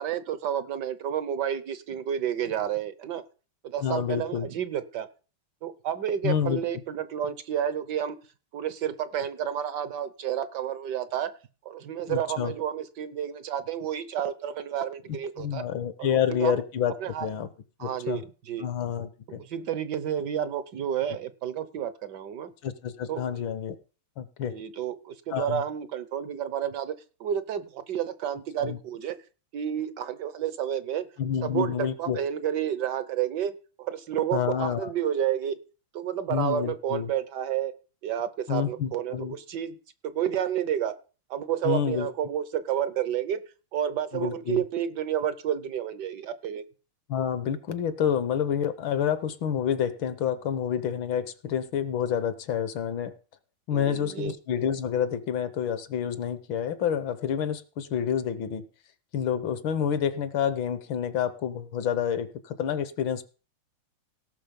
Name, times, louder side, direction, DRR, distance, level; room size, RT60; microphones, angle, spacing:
voice 1, 0.0-3.2 3.6-5.1 5.6-8.2 8.5-11.3 11.6-15.7 16.0-16.6 17.0-17.3 17.8-18.7 19.5-22.5 23.1-23.4 24.4-29.2 29.5-31.1 31.4-35.6 35.9-37.7 38.0-39.8 40.0-41.0 41.3-43.4 43.7-46.6 53.7-54.3, right 10 dB, 65° right, 14 dB, 1.2 m, -30 dB
voice 2, 3.8-4.5 6.2-6.6 12.1-12.5 15.4-16.9 17.2-17.5 17.8-18.2 18.6-19.4 22.6-23.7 24.2-24.6 25.3-25.6 28.6-28.8 31.2-32.2 34.3-34.9 36.3-37.1 38.5-39.4 41.6-42.1 44.1-44.6 47.1-53.1 53.7-58.6 59.1-63.3, left 8 dB, 70° left, 13 dB, 1.6 m, -28 dB
17.5 x 6.1 x 5.2 m, 0.36 s
omnidirectional pair, 2.4 m